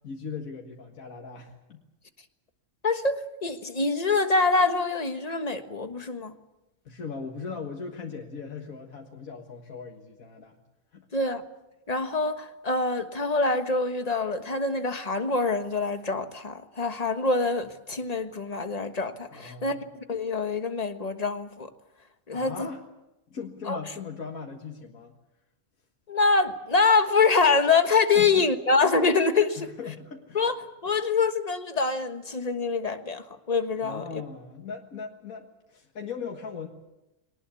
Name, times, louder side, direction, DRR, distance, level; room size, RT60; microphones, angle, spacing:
voice 1, 0.0-1.8 6.9-10.6 10.9-11.1 19.3-19.8 22.3-22.8 23.3-25.1 28.1-28.5 29.6-30.4 33.8-36.7, left 5 dB, 80° left, 1 dB, 2.1 m, -39 dB
voice 2, 2.8-6.3 11.1-11.4 11.9-19.8 20.1-21.7 22.3-22.7 23.7-23.8 26.1-29.7 30.3-30.5 30.8-34.2, left 4 dB, 30° left, 8 dB, 1.5 m, -25 dB
23.0 x 19.0 x 8.4 m, 0.95 s
omnidirectional pair, 1.4 m